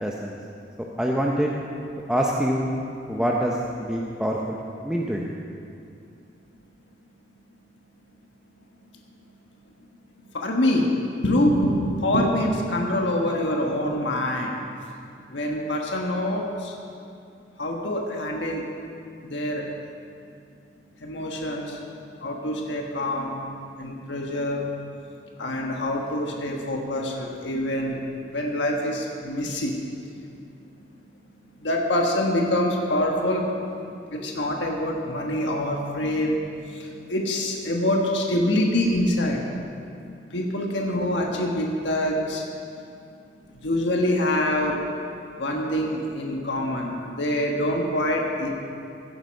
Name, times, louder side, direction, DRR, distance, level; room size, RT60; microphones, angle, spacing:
voice 1, 0.0-0.3 1.0-1.6 2.1-2.7 3.1-4.6 4.8-5.3, equal, 5° right, -2 dB, 0.7 m, -25 dB
voice 2, 10.2-10.9 11.2-14.6 15.3-16.8 17.6-18.6 19.2-19.6 21.0-21.8 22.2-23.4 23.8-24.7 25.4-28.0 28.3-29.8 31.6-33.4 34.1-36.4 36.7-39.4 40.3-42.5 43.6-44.8 45.4-48.5, left 1 dB, 90° left, 0 dB, 1.4 m, -25 dB
16.0 x 8.2 x 5.3 m, 2.5 s
head